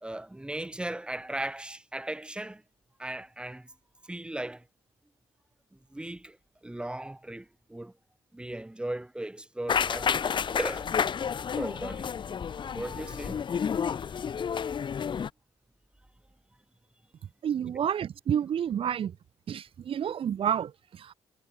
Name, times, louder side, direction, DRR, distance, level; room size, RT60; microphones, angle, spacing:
voice 1, 0.0-2.6 3.0-3.7 4.0-4.6 5.9-6.4 6.6-7.9 8.3-10.9 11.6-12.2 12.7-13.4 14.0-14.1, right 1 dB, 10° right, 3.9 m, -37 dB
sound 1, 9.7-15.3, left 7 dB, 45° left, 2.0 m, -30 dB
voice 2, 17.4-19.2 19.5-21.1, right 9 dB, 50° right, 1.3 m, -29 dB
cardioid pair, 95°, 12 cm